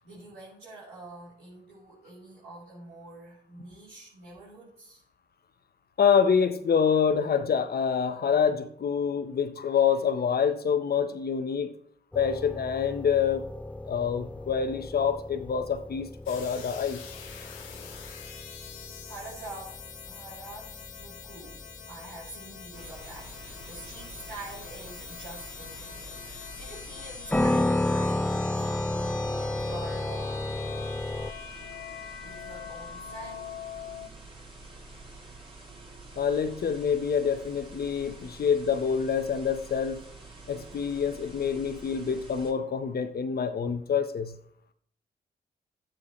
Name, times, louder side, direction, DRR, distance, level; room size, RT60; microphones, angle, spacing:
voice 1, 0.0-5.0 19.0-30.4 30.6-31.7 32.2-33.5, right 2 dB, 90° right, -11 dB, 4.2 m, -46 dB
voice 2, 6.0-11.7 12.1-13.5 13.9-17.0 36.2-40.0 40.5-44.4, left 7 dB, 50° left, 9 dB, 1.2 m, -26 dB
Pianotone dark, 12.1-31.3, left 1 dB, 5° left, 0.5 m, -33 dB
sound 1, 16.3-34.1, left 7 dB, 75° left, 1.7 m, -44 dB
sound 2, 22.7-42.5, right 2 dB, 25° right, 3.2 m, -48 dB
12.0 x 9.0 x 3.3 m, 0.66 s
hypercardioid pair, 45°, 20 cm